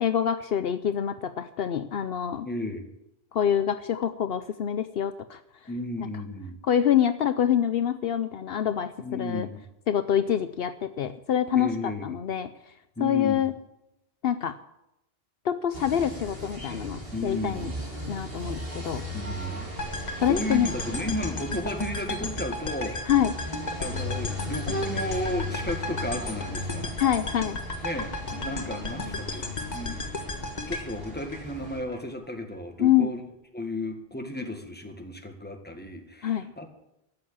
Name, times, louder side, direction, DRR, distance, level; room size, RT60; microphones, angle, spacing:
voice 1, 0.0-2.5 3.3-5.4 6.0-6.1 6.6-9.5 9.9-12.5 13.0-13.5 14.2-14.6 15.4-17.7 18.1-19.0 20.2-20.7 23.1-23.3 27.0-27.6 32.8-33.1 36.2-36.5, left 9 dB, 70° left, 11 dB, 0.8 m, -26 dB
voice 2, 2.4-2.9 5.7-6.6 9.0-9.6 11.5-12.1 13.0-13.4 17.1-17.8 19.1-19.7 20.3-23.1 23.8-26.9 27.8-30.0 30.7-33.2 33.5-36.7, left 1 dB, 10° left, 4 dB, 1.8 m, -33 dB
sound 1, 15.7-31.8, left 1 dB, 65° right, 3.3 m, -37 dB
sound 2, 19.8-32.0, left 2 dB, 45° left, 1.5 m, -35 dB
13.0 x 7.9 x 8.7 m, 0.86 s
omnidirectional pair, 1.1 m